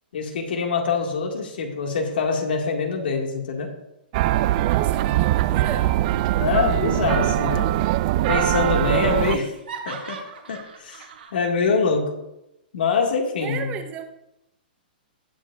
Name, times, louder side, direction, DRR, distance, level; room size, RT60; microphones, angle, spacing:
voice 1, 0.1-3.7 6.4-7.7 8.3-9.5 9.9-10.2 10.5-11.0 11.3-12.2 12.7-13.7, left 4 dB, 75° left, 3 dB, 1.9 m, -24 dB
sound 1, 4.1-9.4, right 15 dB, 45° right, 0.3 m, -21 dB
voice 2, 4.6-6.0 13.4-14.1, right 7 dB, 30° right, 5 dB, 1.0 m, -34 dB
Laughter, 8.9-11.4, right 5 dB, 85° right, 2.1 m, -40 dB
18.0 x 7.3 x 2.5 m, 0.89 s
hypercardioid pair, 135°, 5 cm